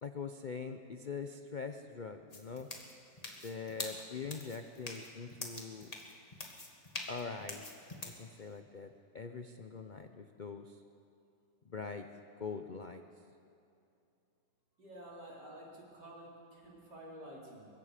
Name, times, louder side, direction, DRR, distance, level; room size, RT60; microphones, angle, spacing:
voice 1, 0.0-2.7 3.4-5.9 7.1-7.7 8.0-10.8 11.7-12.1 12.4-13.0, left 5 dB, 80° left, 7 dB, 0.4 m, -43 dB
sound 1, 2.3-8.2, left 2 dB, 20° left, 1.8 m, -45 dB
voice 2, 14.8-17.7, right 1 dB, 65° right, -4 dB, 4.8 m, -50 dB
24.0 x 22.0 x 5.0 m, 2.7 s
omnidirectional pair, 1.9 m